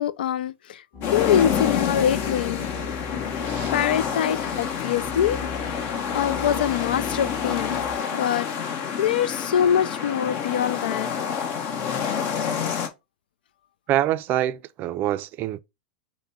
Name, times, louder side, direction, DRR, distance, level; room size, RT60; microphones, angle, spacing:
voice 1, 0.0-2.7 3.7-5.4 5.6-5.8 6.1-7.8 8.1-11.1, left 9 dB, 75° left, 0.4 m, -24 dB
sound 1, 0.9-8.0, left 2 dB, 25° left, 1.4 m, -38 dB
sound 2, 1.0-12.9, left 7 dB, 45° left, 1.0 m, -28 dB
voice 2, 13.9-15.6, right 13 dB, 40° right, 0.4 m, -25 dB
5.7 x 2.1 x 4.3 m
hypercardioid pair, 110°, 5 cm